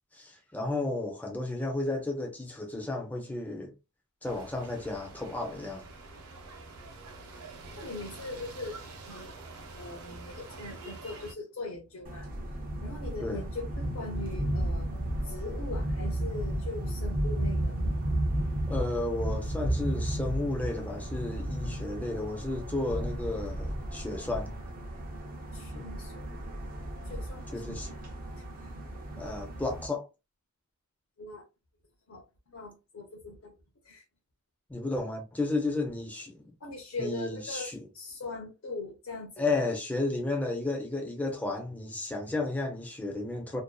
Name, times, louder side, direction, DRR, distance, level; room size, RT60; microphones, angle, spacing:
voice 1, 0.1-3.7 4.2-5.8 13.2-13.4 18.7-24.5 25.7-26.0 27.5-27.9 29.2-30.1 34.7-36.5 37.0-37.9 39.4-43.6, left 2 dB, 5° left, 0.5 m, -33 dB
sound 1, 4.2-11.3, right 3 dB, 90° right, 0.7 m, -46 dB
voice 2, 7.8-9.4 9.8-12.3 12.8-14.9 15.2-17.8 25.5-26.4 27.0-28.0 28.6-28.7 31.2-31.4 32.1-33.5 33.8-34.0 36.6-39.6, left 2 dB, 60° left, 0.6 m, -41 dB
sound 2, 12.0-29.9, right 1 dB, 40° right, 0.5 m, -33 dB
2.5 x 2.2 x 2.2 m
head